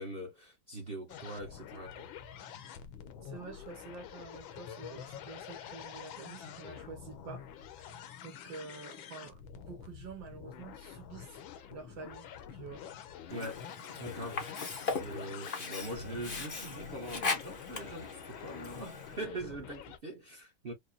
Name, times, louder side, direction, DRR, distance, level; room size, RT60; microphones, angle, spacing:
voice 1, 0.0-2.1 13.3-13.6 14.0-14.7 15.0-20.7, right 1 dB, 40° right, 0.9 m, -42 dB
sound 1, 1.1-20.0, left 8 dB, 75° left, 1.4 m, -47 dB
voice 2, 3.2-7.9 8.2-11.4 11.7-12.9, right 4 dB, 70° right, 1.7 m, -48 dB
Sink (filling or washing), 13.3-19.3, left 4 dB, 60° left, 0.5 m, -39 dB
5.0 x 2.2 x 2.6 m
omnidirectional pair, 2.2 m